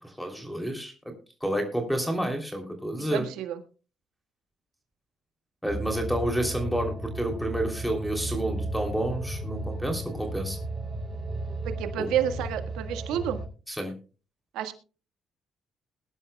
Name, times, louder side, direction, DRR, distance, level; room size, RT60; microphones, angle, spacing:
voice 1, 0.0-0.9 1.4-3.2 5.6-10.6 12.0-12.1 13.7-13.9, right 1 dB, ahead, 4 dB, 3.2 m, -29 dB
voice 2, 3.0-3.6 11.6-13.4 14.5-14.7, right 10 dB, 85° right, 7 dB, 1.6 m, -30 dB
sound 1, 5.7-13.5, right 1 dB, 40° right, 5.6 m, -34 dB
21.0 x 11.0 x 2.3 m, 0.35 s
cardioid pair, 80°, 0 cm